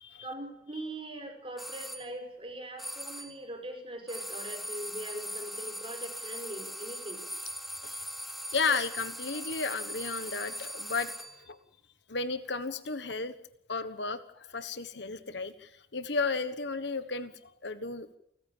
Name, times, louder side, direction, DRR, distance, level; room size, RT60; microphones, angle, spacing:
voice 1, 0.2-7.2, right 1 dB, 30° right, 5 dB, 5.4 m, -41 dB
sound 1, 1.6-2.1 2.8-3.4 4.1-11.4, equal, ahead, 1.3 m, -40 dB
voice 2, 8.5-11.6 12.1-13.3 13.7-17.3 17.6-18.2, left 4 dB, 60° left, 12 dB, 1.3 m, -33 dB
30.0 x 15.0 x 7.4 m, 0.79 s
head